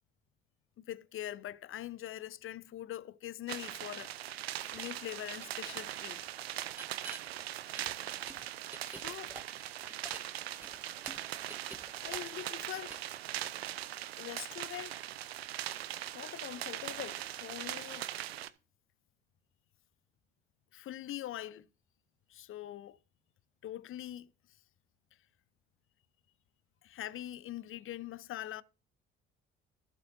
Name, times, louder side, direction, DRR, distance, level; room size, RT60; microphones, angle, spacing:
voice 1, 0.8-4.1 4.6-6.3 7.8-7.9 8.8-9.4 11.7-13.0 14.2-15.0 16.1-18.3 20.7-21.7 22.3-23.0 23.6-24.3 26.8-28.6, left 13 dB, 45° left, 0.7 m, -43 dB
sound 1, 3.5-18.5, right 13 dB, 80° right, 0.5 m, -41 dB
sound 2, 4.7-4.8 5.4-5.5 6.7-7.2 7.8-10.3 10.6-12.6 12.9-13.1, right 1 dB, 5° right, 1.0 m, -49 dB
14.5 x 7.6 x 2.6 m
figure-of-eight pair, 50°, 30 cm